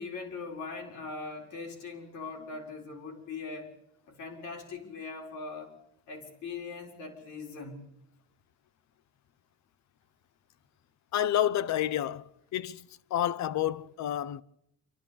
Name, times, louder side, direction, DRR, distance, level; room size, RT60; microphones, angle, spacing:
voice 1, 0.0-3.7 4.1-5.7 6.1-7.9, left 4 dB, 90° left, 4.5 m, -41 dB
voice 2, 11.1-14.4, left 11 dB, 65° left, 0.8 m, -30 dB
27.0 x 12.5 x 8.5 m
cardioid pair, 95°, 30 cm